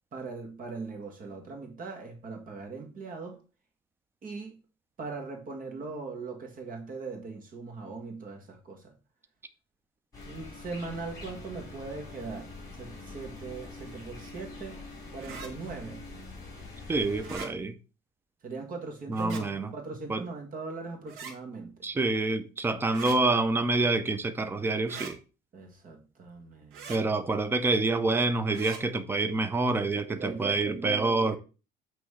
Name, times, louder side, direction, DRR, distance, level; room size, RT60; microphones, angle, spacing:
voice 1, 0.1-3.4 4.2-4.6 5.0-8.9 10.3-14.8 15.1-16.0 18.4-21.7 25.5-26.9 29.9-31.4, right 4 dB, 40° right, 1.6 m, -40 dB
sound 1, 10.1-17.4, left 2 dB, 15° left, 3.5 m, -44 dB
sound 2, 15.2-15.5 17.2-17.5 19.1-19.4 21.1-21.3 22.9-23.2 24.9-25.1 26.7-27.0 28.5-28.8, right 5 dB, 85° right, 1.4 m, -41 dB
voice 2, 16.9-17.8 19.1-19.7 20.1-20.2 21.8-25.2 26.9-31.4, right 3 dB, 10° right, 0.6 m, -27 dB
7.7 x 3.1 x 4.8 m
cardioid pair, 130°, 21 cm